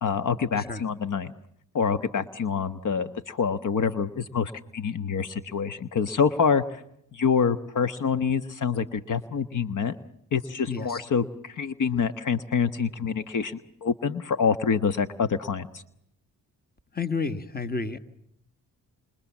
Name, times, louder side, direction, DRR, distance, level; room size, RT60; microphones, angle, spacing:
voice 1, 0.0-1.3 1.7-6.8 7.1-10.0 10.3-15.8, left 6 dB, 55° left, 11 dB, 1.3 m, -26 dB
voice 2, 10.7-11.0 16.9-18.0, left 4 dB, 25° left, 11 dB, 1.8 m, -30 dB
29.0 x 26.5 x 7.3 m, 0.78 s
supercardioid pair, 60°, 37 cm